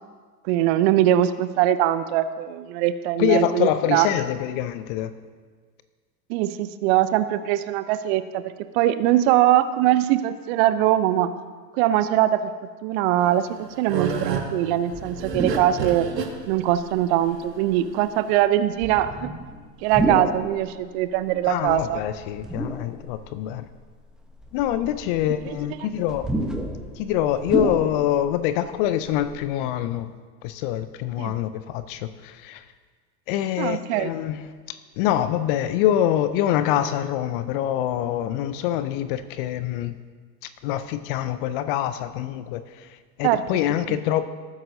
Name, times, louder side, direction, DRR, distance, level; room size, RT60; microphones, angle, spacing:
voice 1, 0.5-4.1 6.3-8.4 8.7-11.3 11.7-12.5 12.8-13.5 13.8-16.1 16.5-19.3 19.8-22.0 31.2-31.3 33.6-34.1 43.2-43.4 43.9-44.0, right 12 dB, 40° right, 13 dB, 0.7 m, -21 dB
voice 2, 3.2-5.1 21.4-23.7 24.5-26.3 26.9-30.1 30.4-32.7 33.3-40.0 40.4-44.3, left 11 dB, 35° left, 12 dB, 0.5 m, -25 dB
sound 1, 13.2-18.4, right 6 dB, 80° right, 1.5 m, -31 dB
sound 2, 14.9-15.9 16.5-16.6 17.7-18.0 18.7-20.5 21.6-23.2 23.7-23.8 24.4-28.4 28.7-28.8 29.0-29.4, right 1 dB, ahead, 1.0 m, -30 dB
19.5 x 9.6 x 2.7 m, 1.5 s
figure-of-eight pair, 90°, 49 cm